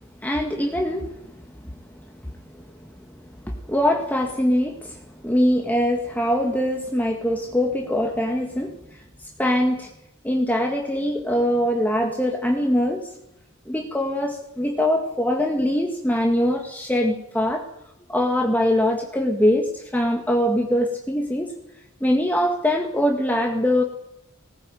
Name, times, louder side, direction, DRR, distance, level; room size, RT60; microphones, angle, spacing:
voice 1, 0.2-1.8 2.2-9.9 10.2-13.2 13.7-17.6 18.1-21.5 22.0-23.8, left 1 dB, 10° left, 2 dB, 1.9 m, -23 dB
19.5 x 19.5 x 9.2 m, 0.82 s
head